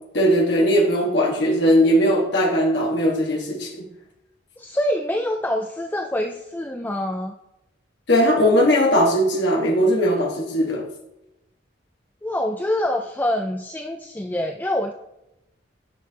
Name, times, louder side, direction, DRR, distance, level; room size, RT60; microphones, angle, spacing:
voice 1, 0.1-3.9 8.1-10.8, equal, 65° left, -2 dB, 1.5 m, -19 dB
voice 2, 4.6-7.3 12.2-14.9, left 1 dB, 10° left, 3 dB, 0.3 m, -25 dB
10.5 x 5.6 x 2.9 m, 0.88 s
head